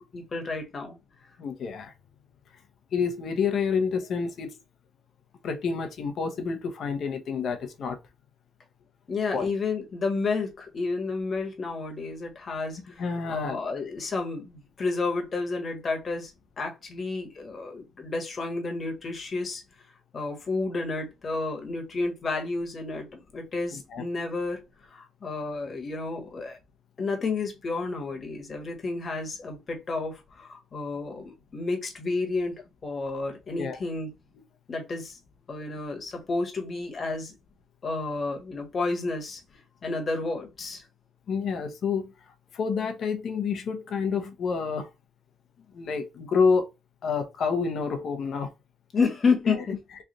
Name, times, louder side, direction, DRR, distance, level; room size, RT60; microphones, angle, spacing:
voice 1, 0.1-1.0 9.1-13.0 13.3-19.6 20.1-24.6 24.9-26.6 27.0-34.1 34.7-35.2 35.5-37.3 37.8-39.4 39.8-40.8 48.9-49.7, left 3 dB, 40° left, 1.3 m, -31 dB
voice 2, 1.4-1.9 2.9-4.5 5.4-8.0 9.3-9.5 13.0-13.6 23.9-24.0 33.6-33.8 41.3-42.1 42.5-44.9 45.7-46.7 47.0-48.5 49.5-49.6, left 5 dB, 65° left, 0.9 m, -28 dB
3.3 x 2.5 x 3.9 m
cardioid pair, 90°, 0 cm